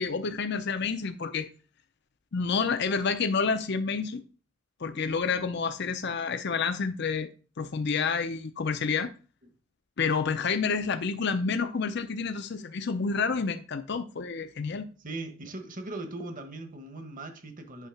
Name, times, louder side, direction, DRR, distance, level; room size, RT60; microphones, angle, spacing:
voice 1, 0.0-1.5 2.3-4.2 4.8-7.3 7.6-9.1 10.0-14.9, left 5 dB, 50° left, 0.6 m, -29 dB
voice 2, 15.0-17.9, right 2 dB, 40° right, 1.1 m, -39 dB
8.3 x 2.9 x 5.8 m
head